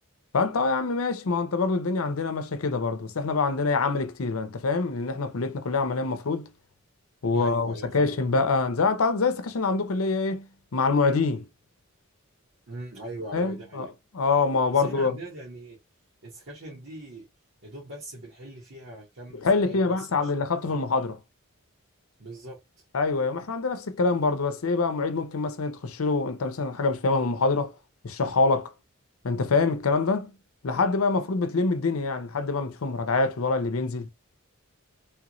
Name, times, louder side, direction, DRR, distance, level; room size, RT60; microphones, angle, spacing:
voice 1, 0.3-6.5 7.2-10.5 10.7-11.5 13.3-13.9 14.1-15.2 19.3-21.2 22.9-27.7 28.0-28.7 29.2-30.3 30.6-34.1, left 3 dB, 70° left, 0.6 m, -25 dB
voice 2, 7.3-8.2 12.7-13.9 14.7-15.8 16.2-17.3 17.6-20.8 22.2-22.8, right 1 dB, 60° right, 1.4 m, -41 dB
3.5 x 2.5 x 3.0 m
head